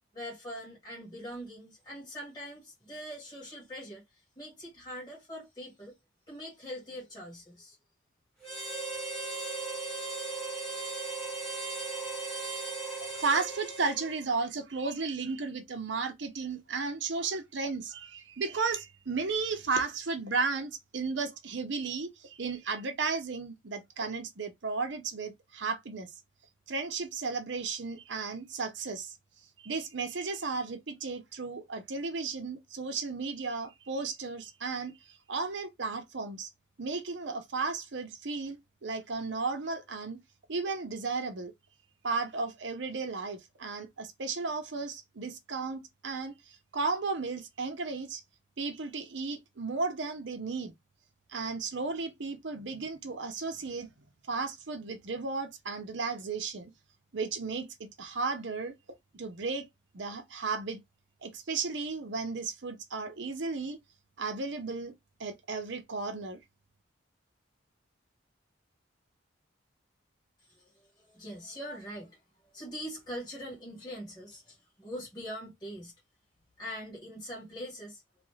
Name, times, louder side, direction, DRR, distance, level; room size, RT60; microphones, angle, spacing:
voice 1, 0.1-6.0 6.3-7.8 70.5-75.9 76.6-78.0, equal, 20° left, 1.6 m, -43 dB
Harmonica, 8.4-14.4, right 3 dB, ahead, 1.1 m, -37 dB
voice 2, 13.0-26.1 26.7-29.1 29.6-36.5 36.8-40.2 40.5-41.5 42.0-46.3 46.7-48.2 48.6-50.7 51.3-53.9 54.3-56.7 57.1-58.7 59.1-59.7 59.9-60.8 61.2-63.8 64.2-64.9 65.2-66.4, right 4 dB, 65° right, 0.7 m, -34 dB
3.1 x 2.5 x 3.1 m
head